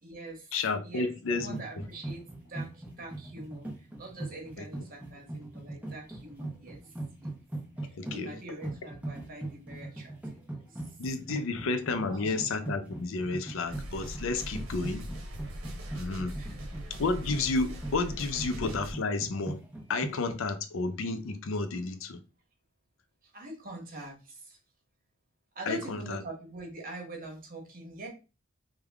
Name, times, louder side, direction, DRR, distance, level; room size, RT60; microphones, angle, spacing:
voice 1, 0.0-0.5 0.8-6.8 7.2-7.3 7.8-10.9 12.1-12.3 16.3-16.6 23.2-24.6 25.5-28.1, right 2 dB, 45° right, 1.3 m, -44 dB
voice 2, 0.5-1.6 4.6-4.7 7.9-8.3 11.0-15.0 16.0-16.4 17.0-19.6 19.9-22.2 25.7-26.2, left 3 dB, 65° left, 0.5 m, -31 dB
sound 1, 1.2-20.3, right 2 dB, 5° right, 0.8 m, -40 dB
sound 2, 13.6-18.9, equal, 75° right, 0.8 m, -40 dB
3.5 x 2.2 x 3.4 m
head